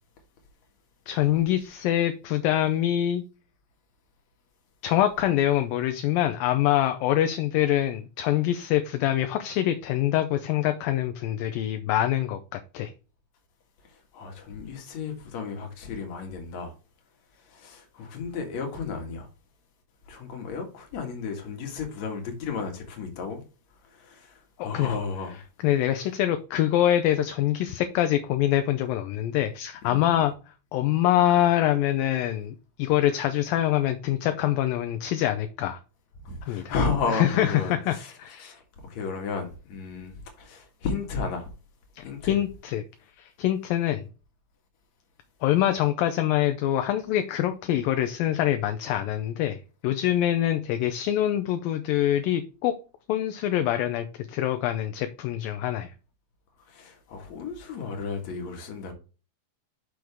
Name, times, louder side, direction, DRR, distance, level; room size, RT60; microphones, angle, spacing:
voice 1, 1.1-3.2 4.8-12.9 24.6-25.0 25.6-30.3 30.7-35.8 36.5-36.8 37.1-38.4 42.0-42.8 43.2-44.0 45.4-52.7 53.1-55.9, left 12 dB, 80° left, 2.2 m, -25 dB
voice 2, 13.9-16.7 17.5-19.3 20.1-23.4 23.9-25.4 29.8-30.2 36.2-41.5 42.0-42.4 56.7-58.9, left 5 dB, 55° left, 2.5 m, -33 dB
6.3 x 6.2 x 3.5 m
omnidirectional pair, 4.5 m